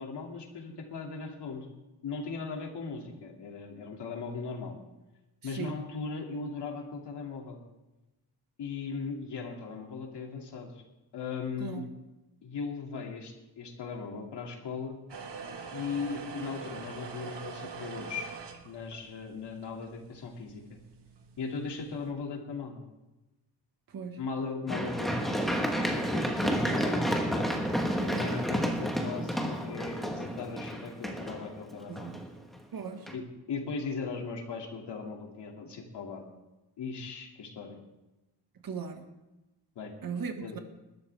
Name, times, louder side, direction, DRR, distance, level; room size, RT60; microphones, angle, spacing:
voice 1, 0.0-1.7 2.0-4.7 5.4-7.6 8.6-10.8 11.1-11.9 12.4-15.0 15.7-18.3 18.6-20.8 21.4-22.8 24.2-27.6 28.0-32.2 33.1-33.2 33.5-36.2 36.8-37.8 39.8-40.0 40.4-40.6, left 4 dB, 80° left, 1 dB, 2.5 m, -38 dB
voice 2, 5.4-5.8 11.6-11.9 23.9-24.2 28.0-28.3 31.9-32.3 32.7-33.1 38.6-39.1 40.0-40.6, right 6 dB, 55° right, 6 dB, 1.5 m, -38 dB
sound 1, 15.1-22.1, right 5 dB, 80° right, 1.6 m, -44 dB
Run, 24.7-32.6 33.1-33.2, equal, ahead, 1.3 m, -31 dB
20.5 x 12.0 x 3.4 m, 1.0 s
wide cardioid pair, 175°, 41 cm